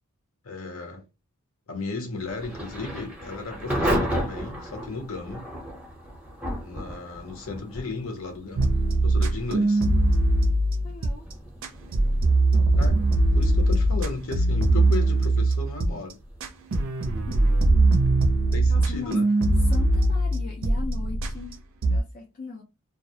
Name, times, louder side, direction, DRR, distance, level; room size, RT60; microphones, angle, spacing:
voice 1, 0.4-1.0 1.7-5.5 6.6-8.7 9.0-9.8 12.8-13.0 13.3-16.2 18.5-19.3, left 3 dB, 65° left, 0.8 m, -35 dB
Thunder / Rain, 2.2-18.9, equal, 5° right, 0.6 m, -35 dB
voice 2, 6.7-7.0 10.8-11.3 17.3-17.4 18.7-19.2 19.6-22.6, left 4 dB, 35° left, 0.4 m, -39 dB
sound 1, 8.6-11.3 11.6-15.9 16.4-21.5 21.8-22.0, right 2 dB, 60° right, 0.4 m, -21 dB
2.3 x 2.0 x 2.7 m
head